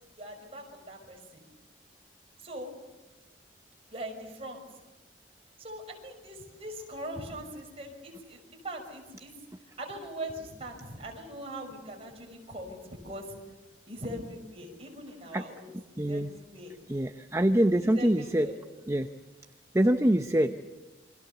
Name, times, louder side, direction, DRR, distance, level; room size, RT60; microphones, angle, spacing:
voice 1, 0.2-1.4 2.4-2.7 3.9-4.6 5.6-8.4 8.6-9.3 9.8-13.4 13.9-16.8 17.8-18.6, right 1 dB, 35° right, 2 dB, 5.9 m, -41 dB
voice 2, 16.0-16.3 16.9-18.5 18.9-19.1 19.7-20.7, right 1 dB, 15° right, 8 dB, 0.8 m, -25 dB
29.0 x 24.5 x 6.9 m, 1.2 s
head